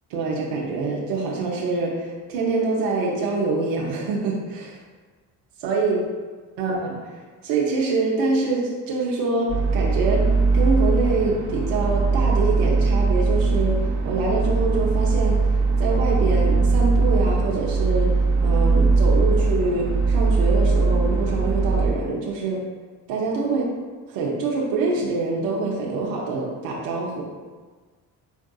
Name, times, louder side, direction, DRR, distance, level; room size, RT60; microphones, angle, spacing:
voice 1, 0.1-4.8 5.6-6.0 6.6-13.8 14.0-15.4 15.8-18.2 18.4-22.6 23.1-23.6 24.1-27.3, right 3 dB, 75° right, -3 dB, 0.9 m, -25 dB
sound 1, 9.5-21.9, right 3 dB, 40° right, 0.9 m, -20 dB
5.5 x 3.5 x 2.3 m, 1.4 s
hypercardioid pair, 45°, 45 cm